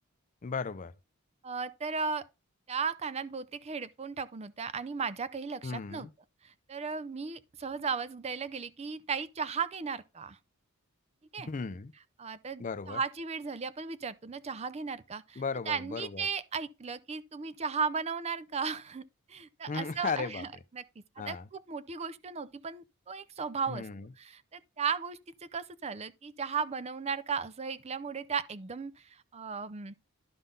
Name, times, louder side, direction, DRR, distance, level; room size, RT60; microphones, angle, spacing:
voice 1, 0.4-0.9 5.6-6.1 11.4-11.9 12.6-13.0 15.4-16.3 19.7-20.4 21.2-21.5 23.7-24.1, left 5 dB, 35° left, 0.4 m, -36 dB
voice 2, 1.4-2.3 2.7-6.1 6.4-10.4 11.3-11.5 12.2-20.5 20.7-20.8 21.2-23.9 24.2-25.2 25.5-29.9, right 5 dB, 30° right, 0.5 m, -36 dB
11.5 x 3.8 x 5.3 m
head